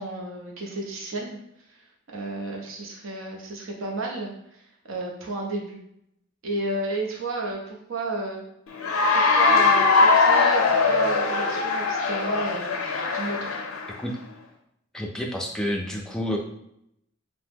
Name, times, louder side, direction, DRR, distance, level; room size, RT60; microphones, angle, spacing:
voice 1, 0.0-1.4 1.7-1.9 2.1-5.8 6.4-8.4 9.1-12.7 13.1-13.4, right 2 dB, 70° right, 0 dB, 0.7 m, -32 dB
Cheering / Applause, 8.8-14.0, left 4 dB, 80° left, 0.4 m, -21 dB
voice 2, 14.9-16.4, left 1 dB, 5° left, 0 dB, 0.3 m, -29 dB
2.9 x 2.1 x 3.4 m, 0.77 s
head